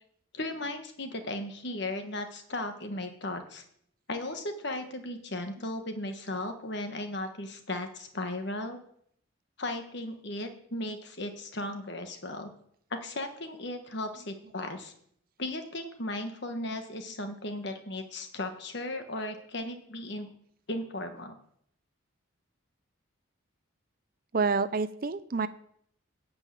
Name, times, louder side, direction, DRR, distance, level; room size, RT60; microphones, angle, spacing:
voice 1, 0.3-3.6 4.1-8.8 9.6-12.5 12.9-14.9 15.4-20.3 20.7-21.3, left 1 dB, 55° left, 6 dB, 1.4 m, -36 dB
voice 2, 24.3-25.5, right 4 dB, 45° right, 14 dB, 0.5 m, -28 dB
11.5 x 5.5 x 8.3 m, 0.67 s
head